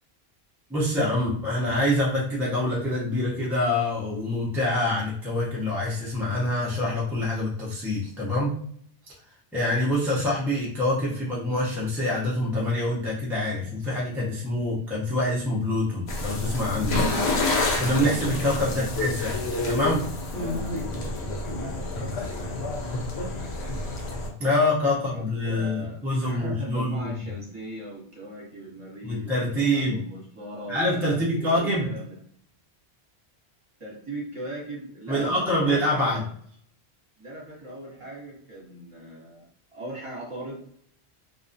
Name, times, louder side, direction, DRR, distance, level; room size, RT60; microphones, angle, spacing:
voice 1, 0.7-8.6 9.5-17.0 17.8-19.4 19.6-20.1 24.4-27.1 29.0-30.0 30.7-31.9 35.1-36.2, left 1 dB, 5° right, -6 dB, 0.4 m, -25 dB
sound 1, 16.1-24.3, left 2 dB, 80° left, 0.9 m, -28 dB
voice 2, 20.3-24.2 25.0-32.2 33.8-36.2 37.2-40.6, right 1 dB, 30° right, -5 dB, 1.1 m, -40 dB
2.3 x 2.2 x 2.5 m, 0.62 s
omnidirectional pair, 1.1 m